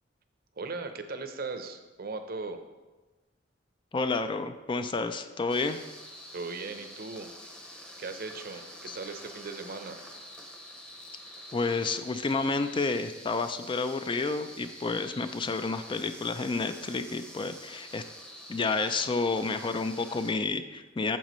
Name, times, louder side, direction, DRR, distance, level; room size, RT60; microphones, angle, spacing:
voice 1, 0.6-2.6 6.3-7.3 7.6-10.0, right 3 dB, 55° right, 7 dB, 0.7 m, -38 dB
voice 2, 3.9-5.8 8.9-9.0 11.5-18.0 18.5-21.2, left 3 dB, 25° left, 9 dB, 0.3 m, -30 dB
sound 1, 5.5-20.3, equal, 5° left, 0.8 m, -47 dB
9.1 x 7.3 x 3.1 m, 1.2 s
head